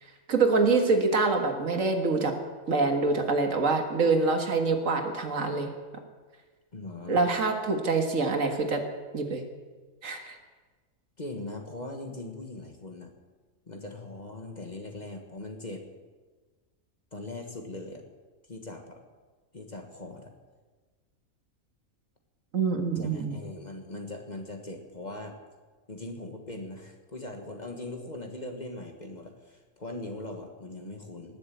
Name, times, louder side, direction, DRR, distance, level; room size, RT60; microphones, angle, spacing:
voice 1, 0.0-2.3 2.7-5.7 7.1-8.8 9.1-9.4 10.0-10.4 22.5-23.4, right 3 dB, 65° right, 5 dB, 2.0 m, -25 dB
voice 2, 6.7-7.2 11.2-13.1 13.7-15.9 17.1-18.0 18.5-19.0 19.5-20.3 23.0-25.4 25.9-31.4, left 2 dB, 30° left, 3 dB, 1.6 m, -40 dB
19.5 x 7.4 x 9.2 m, 1.4 s
omnidirectional pair, 1.5 m